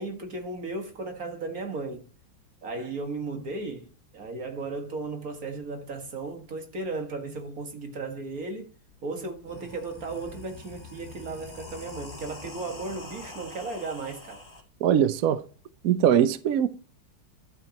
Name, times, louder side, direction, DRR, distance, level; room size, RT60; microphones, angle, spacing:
voice 1, 0.0-2.1 2.6-8.7 9.0-14.4, right 3 dB, 45° right, 2.1 m, -35 dB
sound 1, 8.9-9.0 9.3-14.6, left 2 dB, 15° left, 2.0 m, -44 dB
voice 2, 14.8-15.4 15.8-16.7, right 9 dB, 80° right, 0.8 m, -21 dB
12.0 x 7.3 x 2.9 m
omnidirectional pair, 2.2 m